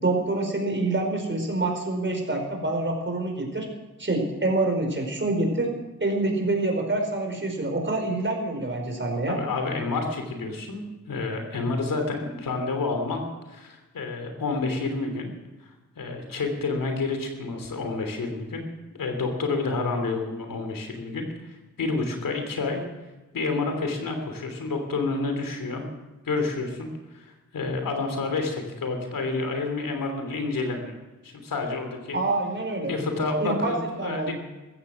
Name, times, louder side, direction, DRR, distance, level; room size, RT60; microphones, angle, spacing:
voice 1, 0.0-3.7 4.0-5.7 6.0-9.4 32.1-33.0 33.4-34.3, right 2 dB, 35° right, 2 dB, 4.9 m, -26 dB
voice 2, 9.3-15.3 16.0-18.6 18.9-22.8 23.3-25.8 26.2-30.9 31.2-32.2 32.9-34.3, left 3 dB, 85° left, 5 dB, 3.2 m, -29 dB
15.0 x 14.5 x 6.3 m, 1.1 s
cardioid pair, 55°, 33 cm